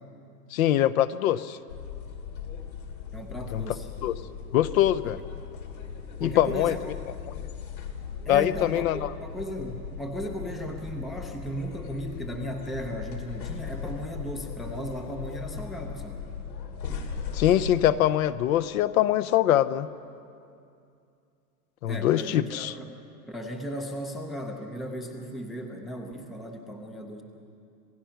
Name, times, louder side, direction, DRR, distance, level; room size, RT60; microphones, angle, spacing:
voice 1, 0.5-1.6 3.5-3.6 4.0-4.2 4.5-5.2 6.2-6.7 7.3-7.4 8.3-9.1 17.3-19.9 21.8-22.7, left 12 dB, 55° left, 14 dB, 0.7 m, -23 dB
sound 1, 1.7-17.9, left 6 dB, 90° left, 3.1 m, -38 dB
voice 2, 3.1-3.9 6.2-6.8 8.3-8.8 9.2-16.2 21.9-22.9 23.3-27.2, equal, ahead, 3 dB, 0.5 m, -36 dB
27.0 x 16.5 x 5.8 m, 2.5 s
hypercardioid pair, 145°, 50 cm